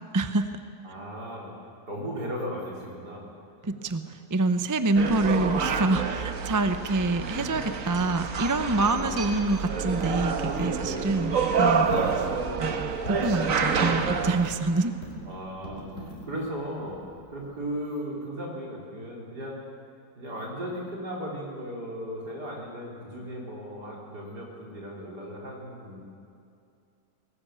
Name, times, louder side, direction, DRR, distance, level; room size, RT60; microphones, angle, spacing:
voice 1, 0.1-0.5 3.6-4.0 4.3-12.3 12.6-14.9, right 2 dB, 20° right, 9 dB, 0.5 m, -26 dB
voice 2, 0.8-1.5 1.9-3.3 8.7-9.3 10.7-11.2 15.2-19.6 20.2-26.1, equal, 75° right, -3 dB, 4.9 m, -36 dB
sound 1, 5.0-14.5, right 5 dB, 55° right, 1.6 m, -28 dB
Coin (dropping), 9.1-17.6, equal, 45° left, 4.3 m, -42 dB
21.5 x 18.0 x 8.4 m, 2.5 s
omnidirectional pair, 1.8 m